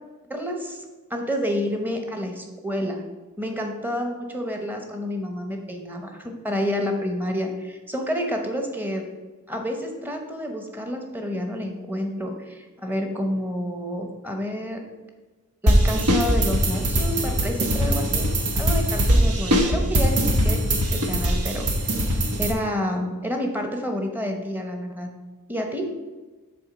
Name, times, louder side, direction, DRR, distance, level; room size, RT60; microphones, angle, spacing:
voice 1, 0.3-0.8 1.1-3.0 3.4-9.0 9.5-14.8 15.6-18.3 18.5-21.7 22.0-22.1 22.4-25.1 25.5-25.9, equal, 10° right, 3 dB, 0.9 m, -29 dB
sound 1, 15.7-22.5, equal, 90° right, 1.1 m, -21 dB
7.0 x 4.0 x 6.0 m, 1.2 s
head